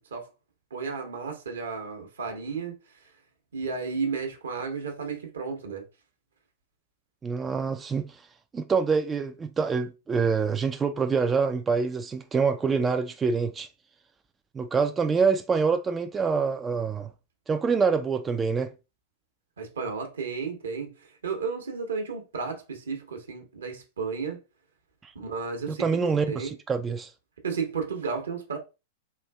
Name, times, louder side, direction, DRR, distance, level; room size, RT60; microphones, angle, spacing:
voice 1, 0.7-2.8 3.5-5.8 19.6-24.4 25.1-25.9 26.3-26.5 27.4-28.6, right 5 dB, 80° right, 1.0 m, -33 dB
voice 2, 7.2-8.1 8.5-13.7 14.5-17.1 17.5-18.7 25.7-27.1, right 5 dB, 20° right, 0.3 m, -26 dB
4.2 x 2.6 x 2.2 m
hypercardioid pair, 100°, 0 cm